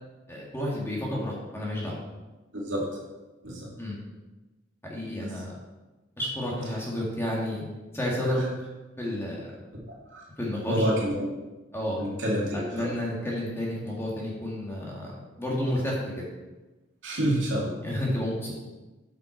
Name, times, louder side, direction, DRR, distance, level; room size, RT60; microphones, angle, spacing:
voice 1, 0.3-2.0 3.8-4.0 4.8-5.5 6.2-7.6 7.9-8.4 9.0-9.5 10.4-10.8 11.7-12.0 12.5-15.1 15.4-16.2 17.8-18.6, left 1 dB, 15° left, -4 dB, 2.0 m, -31 dB
voice 2, 10.7-11.3 12.0-12.9 17.0-17.8, equal, 75° right, -3 dB, 2.4 m, -28 dB
8.1 x 6.0 x 4.5 m, 1.1 s
head